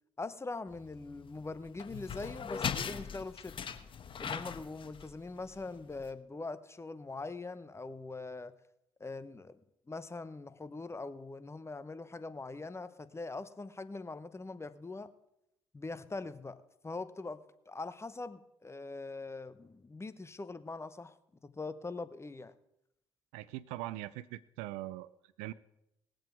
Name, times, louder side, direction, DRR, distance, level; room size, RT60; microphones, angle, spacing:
voice 1, 0.2-3.6 4.2-8.5 9.0-9.6 9.9-15.1 15.7-21.1 21.4-22.5, left 3 dB, 25° left, 14 dB, 1.0 m, -42 dB
sound 1, 0.7-6.1, left 7 dB, 50° left, 1.2 m, -40 dB
voice 2, 23.3-25.1 25.4-25.5, right 16 dB, 85° right, 16 dB, 0.4 m, -41 dB
20.0 x 7.8 x 4.6 m, 0.83 s
hypercardioid pair, 55°, 11 cm